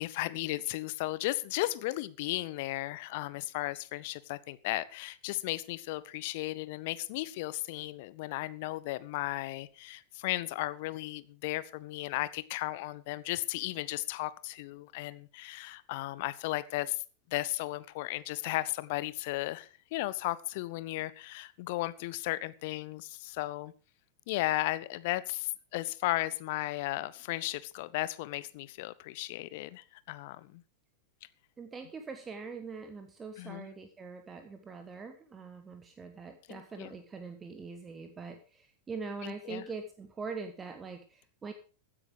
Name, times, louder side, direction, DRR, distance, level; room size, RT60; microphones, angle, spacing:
voice 1, 0.0-17.0 17.3-23.7 24.3-30.6 33.4-33.7 36.5-36.9 39.2-39.6, left 18 dB, 50° left, 1.0 m, -35 dB
voice 2, 31.6-41.5, right 4 dB, 20° right, 1.5 m, -43 dB
16.0 x 10.0 x 5.0 m
figure-of-eight pair, 90°, 0 cm